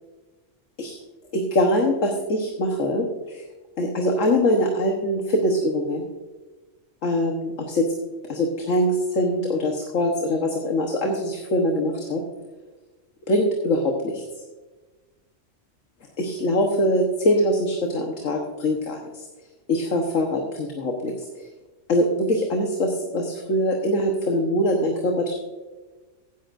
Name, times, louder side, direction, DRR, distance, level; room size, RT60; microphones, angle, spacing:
voice 1, 1.3-3.5 3.8-6.0 7.0-7.9 8.3-12.2 13.3-14.2 16.2-19.2 19.7-21.5 21.9-25.4, left 1 dB, 75° left, 1 dB, 1.6 m, -23 dB
15.5 x 10.0 x 2.6 m, 1.2 s
omnidirectional pair, 1.3 m